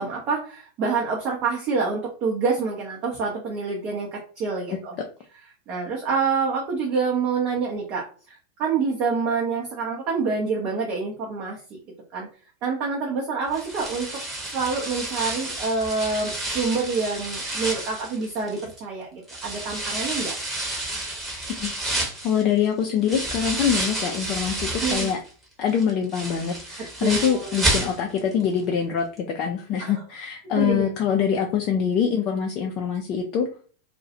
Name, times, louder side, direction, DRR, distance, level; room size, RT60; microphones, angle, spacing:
voice 1, 0.0-4.9 5.7-11.8 12.1-12.3 12.6-14.1 14.5-20.3 24.8-25.1 27.0-27.5 29.8-29.9 30.6-30.9, right 4 dB, 40° right, -2 dB, 0.6 m, -27 dB
sound 1, 13.5-18.8 19.3-25.3 25.7-28.3 28.6-28.7 29.2-29.3, right 1 dB, 15° right, 0.9 m, -30 dB
voice 2, 22.2-25.2 25.6-33.5, left 8 dB, 35° left, 2 dB, 0.3 m, -24 dB
2.3 x 2.1 x 2.7 m, 0.40 s
figure-of-eight pair, 90°, 0 cm